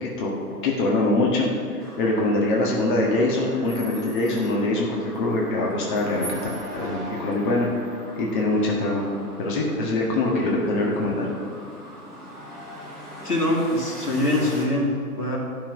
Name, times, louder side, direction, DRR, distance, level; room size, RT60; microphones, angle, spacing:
voice 1, 0.0-0.3 0.6-6.4 6.7-7.7 8.2-9.0 9.4-11.3, left 2 dB, 30° left, -2 dB, 1.6 m, -23 dB
sound 1, 1.8-14.6, equal, ahead, 0.6 m, -40 dB
voice 2, 13.2-15.4, left 1 dB, 80° left, 0 dB, 2.7 m, -23 dB
11.5 x 5.9 x 5.8 m, 2.3 s
hypercardioid pair, 140°, 45 cm